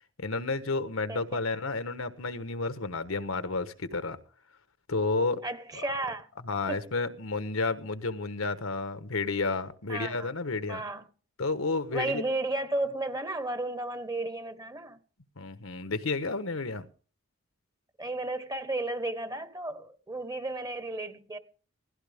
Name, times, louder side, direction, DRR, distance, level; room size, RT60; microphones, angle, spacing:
voice 1, 0.2-4.2 4.9-5.4 6.4-10.8 11.4-12.2 15.4-16.9, left 3 dB, 75° left, 1.3 m, -31 dB
voice 2, 1.1-1.4 5.4-6.3 6.7-6.9 9.9-10.3 10.7-11.0 11.9-15.0 18.0-21.4, right 2 dB, 20° right, 1.2 m, -33 dB
17.0 x 16.0 x 3.6 m
head